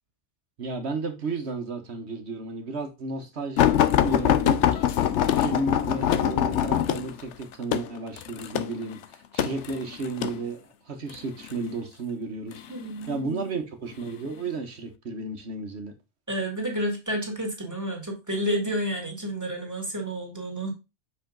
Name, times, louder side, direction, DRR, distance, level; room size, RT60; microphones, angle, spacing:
voice 1, 0.6-10.6 10.9-12.6 13.1-15.9, right 3 dB, 65° right, 1.5 m, -33 dB
sound 1, 3.6-10.4 11.1-11.6 12.5-13.2 13.9-14.1 14.5-14.6, left 10 dB, 80° left, 1.0 m, -23 dB
voice 2, 12.7-13.5 16.3-20.7, right 1 dB, 15° right, 2.2 m, -30 dB
6.4 x 5.0 x 3.8 m
omnidirectional pair, 1.2 m